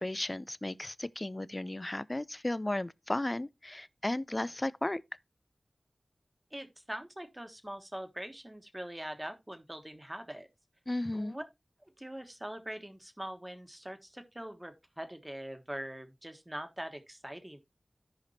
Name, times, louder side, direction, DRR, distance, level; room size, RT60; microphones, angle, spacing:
voice 1, 0.0-5.0 10.9-11.4, left 1 dB, 30° left, 0.4 m, -34 dB
voice 2, 6.5-10.5 11.1-11.4 12.0-17.6, right 1 dB, 20° right, 1.4 m, -43 dB
14.5 x 5.1 x 2.8 m
wide cardioid pair, 45°, 0 cm